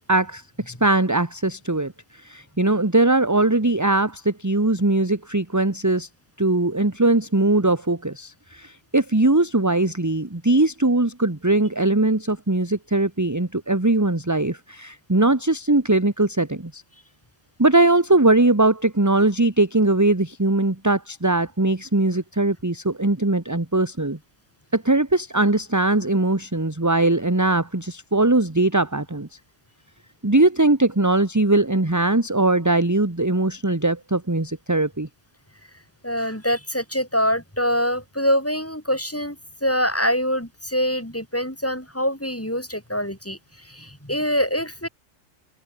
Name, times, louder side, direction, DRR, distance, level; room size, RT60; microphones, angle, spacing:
voice 1, 0.1-6.1 6.4-16.8 17.6-24.2 24.7-29.3 30.2-35.1, right 2 dB, 15° right, 1.5 m, -20 dB
voice 2, 36.0-39.4 39.6-43.4 43.6-44.9, equal, 10° left, 3.1 m, -24 dB
omnidirectional pair, 1.3 m